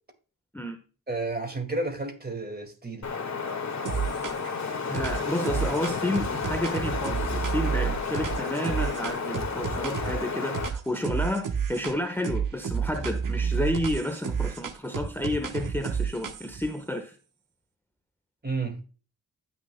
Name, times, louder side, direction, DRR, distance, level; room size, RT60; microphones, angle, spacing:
voice 1, 1.1-3.1 18.4-18.8, right 3 dB, 25° right, 2.1 m, -31 dB
Wind, 3.0-10.7, left 5 dB, 50° left, 1.7 m, -32 dB
sound 1, 3.8-4.6 4.9-10.2 10.5-12.0 12.2-16.7, right 6 dB, 60° right, 1.1 m, -30 dB
voice 2, 4.8-17.1, left 1 dB, 5° left, 1.2 m, -31 dB
15.5 x 6.3 x 2.2 m
cardioid pair, 55°, 35 cm